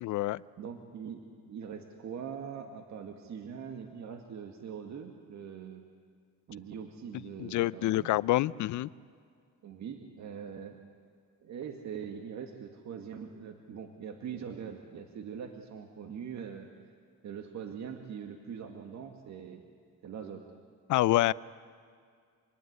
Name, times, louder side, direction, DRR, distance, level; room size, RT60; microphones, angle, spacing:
voice 1, 0.0-0.4 7.4-8.9 20.9-21.3, left 16 dB, 75° left, 20 dB, 0.6 m, -27 dB
voice 2, 0.6-5.8 6.5-8.1 9.6-10.8 11.4-16.7 17.2-19.7 20.0-20.4, right 7 dB, 65° right, 5 dB, 2.0 m, -42 dB
27.5 x 20.0 x 9.8 m, 2.2 s
cardioid pair, 90°, 30 cm